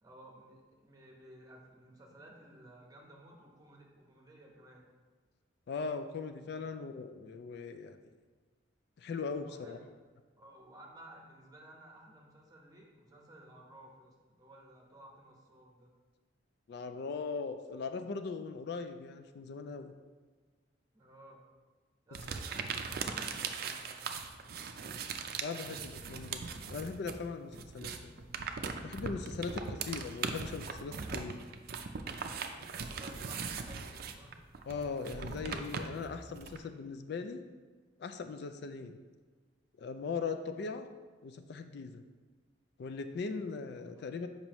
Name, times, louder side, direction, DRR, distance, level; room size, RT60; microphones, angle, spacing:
voice 1, 0.0-4.9 9.4-9.9 10.4-15.9 20.9-21.4 22.1-24.1 24.6-25.1 32.9-34.4 43.7-44.2, right 1 dB, 20° right, -1 dB, 1.0 m, -56 dB
voice 2, 5.7-8.0 9.0-9.8 16.7-19.9 25.4-28.2 28.8-31.4 34.7-37.4 38.0-39.0 39.8-40.9 41.2-42.0 42.8-44.3, left 4 dB, 60° left, 8 dB, 0.4 m, -39 dB
sound 1, 22.1-27.2 27.5-36.6, right 5 dB, 55° right, 0.4 m, -40 dB
7.0 x 5.3 x 3.0 m, 1.4 s
head